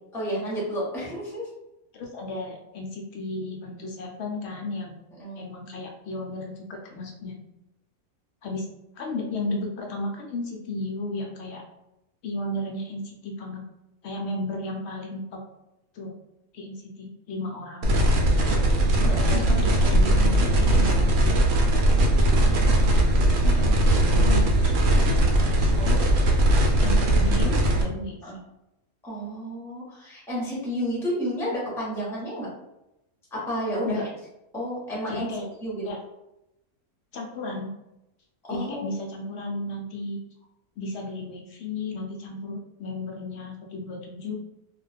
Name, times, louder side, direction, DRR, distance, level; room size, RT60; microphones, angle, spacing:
voice 1, 0.1-1.5 5.2-5.4 19.0-19.4 25.8-25.9 28.2-28.4 29.0-32.5 33.3-34.1 34.5-35.3 35.6-35.9 38.4-38.9, equal, ahead, -5 dB, 0.6 m, -31 dB
voice 2, 1.9-5.0 5.4-7.4 8.4-8.7 8.9-11.6 12.2-13.6 14.0-15.4 15.9-16.2 16.5-17.9 19.3-21.3 22.1-23.8 24.1-25.2 25.6-26.1 26.8-28.3 33.8-34.1 35.1-35.5 35.8-36.0 37.1-37.7 38.5-40.2 40.8-44.4, left 2 dB, 65° left, 1 dB, 0.6 m, -34 dB
sound 1, 17.8-27.8, right 1 dB, 70° right, 0.9 m, -20 dB
2.4 x 2.2 x 3.3 m, 0.89 s
omnidirectional pair, 1.5 m